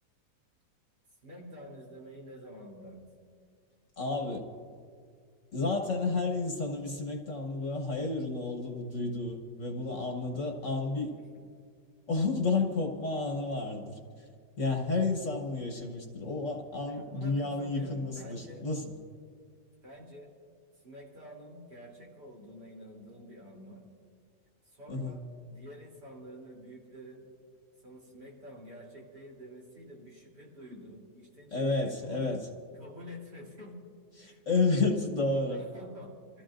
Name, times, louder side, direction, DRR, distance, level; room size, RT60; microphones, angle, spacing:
voice 1, 1.2-3.0 11.1-11.3 16.9-18.7 19.8-20.3 20.8-23.8 24.7-25.2 25.5-27.2 27.8-32.3 32.8-33.8 34.2-34.4 35.2-36.4, equal, 65° right, -4 dB, 3.9 m, -48 dB
voice 2, 4.0-4.5 5.5-11.1 12.1-14.3 14.6-19.0 24.9-25.2 31.5-32.5 34.2-35.6, left 3 dB, 45° left, 2 dB, 1.5 m, -31 dB
29.0 x 14.5 x 2.5 m, 2.1 s
omnidirectional pair, 1.9 m